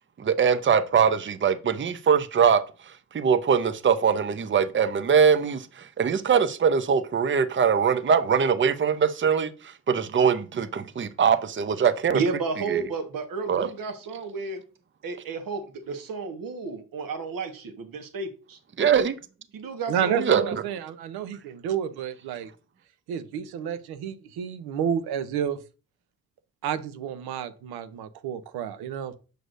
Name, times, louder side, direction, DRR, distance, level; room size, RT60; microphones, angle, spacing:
voice 1, 0.2-2.6 3.1-12.2 12.7-12.8 13.5-13.7 18.8-19.2 20.2-20.6, right 7 dB, 30° right, 0.7 m, -22 dB
voice 2, 12.1-14.6 15.0-18.6 19.5-20.6, right 4 dB, 60° right, 1.4 m, -32 dB
voice 3, 19.9-22.5 23.1-25.6 26.6-29.1, right 8 dB, 85° right, 0.8 m, -30 dB
6.6 x 6.2 x 2.6 m
supercardioid pair, 55°, 37 cm